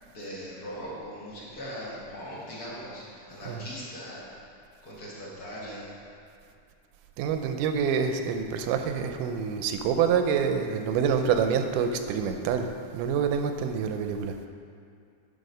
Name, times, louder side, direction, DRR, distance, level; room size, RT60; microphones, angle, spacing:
voice 1, 0.0-4.4 4.8-6.0, equal, 45° left, -6 dB, 1.2 m, -40 dB
voice 2, 7.2-14.3, right 7 dB, 85° right, 6 dB, 2.2 m, -27 dB
10.5 x 3.9 x 5.4 m, 2.4 s
omnidirectional pair, 3.6 m